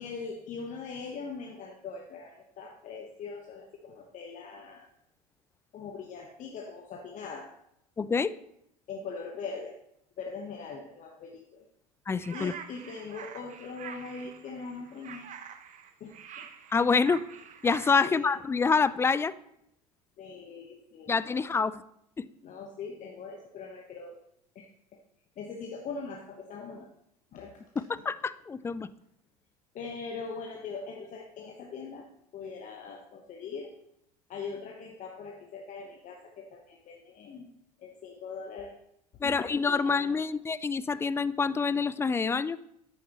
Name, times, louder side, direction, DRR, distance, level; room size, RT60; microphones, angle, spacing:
voice 1, 0.0-4.9 5.7-7.5 8.9-9.8 10.2-11.7 12.3-15.3 16.0-16.5 18.0-18.3 20.2-21.7 22.4-24.2 24.5-24.7 25.4-26.9 27.3-27.6 29.7-33.7 34.3-37.5 37.8-38.8 39.2-40.2, left 5 dB, 40° left, 2 dB, 1.1 m, -41 dB
voice 2, 8.0-8.3 12.1-12.5 16.7-17.2 17.6-19.3 21.1-21.8 22.2-22.3 27.8-28.9 39.2-42.6, left 5 dB, 15° left, 18 dB, 0.3 m, -27 dB
sound 1, 12.2-17.9, right 8 dB, 40° right, 0.9 m, -46 dB
11.0 x 8.7 x 3.0 m, 0.77 s
hypercardioid pair, 75°, 20 cm